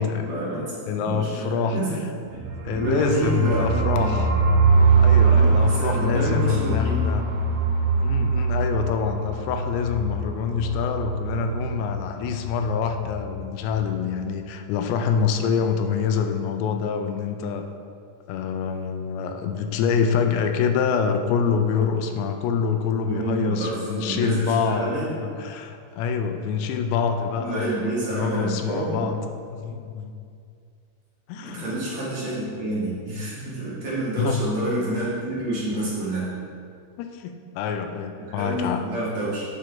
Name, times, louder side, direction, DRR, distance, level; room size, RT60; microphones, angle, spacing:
voice 1, 0.0-2.0 2.3-4.2 5.2-7.0 23.1-25.1 27.4-29.2 31.4-36.3 38.4-39.4, right 1 dB, 50° right, -8 dB, 2.3 m, -28 dB
voice 2, 0.9-1.8 2.7-4.3 4.9-7.2 8.0-17.7 18.3-27.8 28.1-29.2 29.5-30.2 31.3-31.7 34.2-34.4 37.0-38.8, left 6 dB, 80° left, 6 dB, 2.7 m, -26 dB
sound 1, 2.3-12.1 12.3-12.5 12.7-13.2, right 4 dB, 85° right, 2.9 m, -22 dB
8.4 x 6.3 x 3.8 m, 2.3 s
omnidirectional pair, 5.2 m